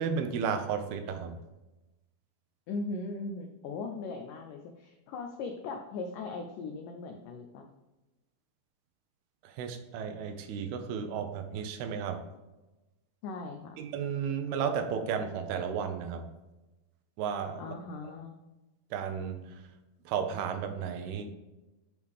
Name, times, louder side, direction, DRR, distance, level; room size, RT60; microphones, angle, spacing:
voice 1, 0.0-1.4 9.4-12.3 13.8-16.3 17.2-17.7 18.9-19.7 20.1-21.3, right 7 dB, 80° right, 6 dB, 2.6 m, -33 dB
voice 2, 2.7-7.7 13.2-13.8 17.6-18.4, left 3 dB, 85° left, 4 dB, 1.8 m, -39 dB
12.5 x 5.0 x 3.5 m, 1.1 s
omnidirectional pair, 4.7 m